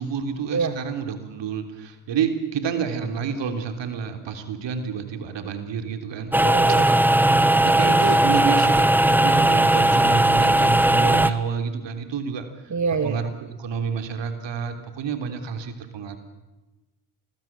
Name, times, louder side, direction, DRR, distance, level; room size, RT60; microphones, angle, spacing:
voice 1, 0.0-6.5 7.3-12.5 13.0-16.2, right 6 dB, 60° right, 8 dB, 3.5 m, -29 dB
sound 1, 6.3-11.3, right 1 dB, 5° right, 1.6 m, -18 dB
voice 2, 6.4-6.9 12.7-13.2, right 5 dB, 35° right, 8 dB, 2.1 m, -25 dB
26.5 x 20.5 x 7.5 m, 1.1 s
hypercardioid pair, 50°, 49 cm